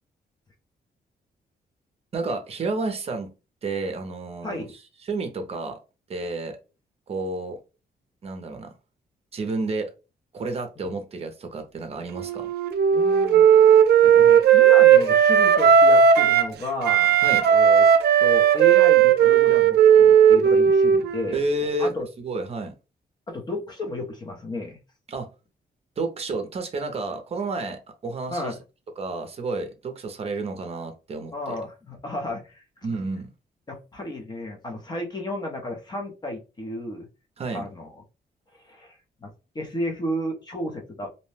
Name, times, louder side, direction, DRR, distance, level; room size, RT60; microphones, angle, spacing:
voice 1, 2.1-3.3 3.6-4.7 5.0-5.8 6.1-6.6 7.1-7.6 8.2-8.7 9.3-9.9 10.3-12.5 17.2-17.5 21.3-21.9 22.2-22.7 25.1-25.3 26.0-28.5 29.0-31.6 32.8-33.3 37.4-37.7, right 2 dB, 40° right, 0.5 m, -30 dB
voice 2, 4.4-4.7 10.8-10.9 12.9-13.6 14.0-17.2 17.5-17.9 18.2-21.4 21.8-22.1 23.3-24.8 28.3-28.6 31.3-32.6 33.7-37.1 37.5-37.9 38.5-41.1, left 1 dB, 25° left, 0.6 m, -32 dB
Wind instrument woodwind instrument, 12.1-16.5 16.8-21.4, right 8 dB, 85° right, 0.4 m, -16 dB
2.6 x 2.0 x 3.2 m
wide cardioid pair, 155°, 17 cm